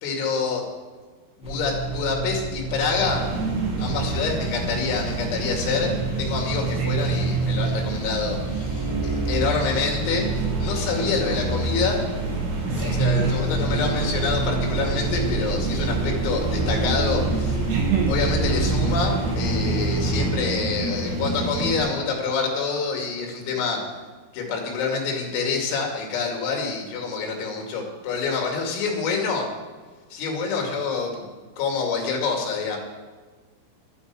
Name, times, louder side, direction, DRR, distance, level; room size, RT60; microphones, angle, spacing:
voice 1, 0.0-0.6 1.4-3.3 3.8-5.9 6.2-12.0 12.8-17.6 18.1-23.9 24.3-29.5 30.1-31.3 31.6-32.8, left 5 dB, 90° left, 1 dB, 5.1 m, -27 dB
sound 1, 1.4-20.3, right 3 dB, ahead, 2.5 m, -27 dB
sound 2, 2.9-21.8, right 3 dB, 50° right, 4.3 m, -30 dB
voice 2, 12.7-13.4 17.7-18.1, right 6 dB, 85° right, 3 dB, 2.3 m, -25 dB
12.5 x 9.7 x 7.6 m, 1.5 s
omnidirectional pair, 5.8 m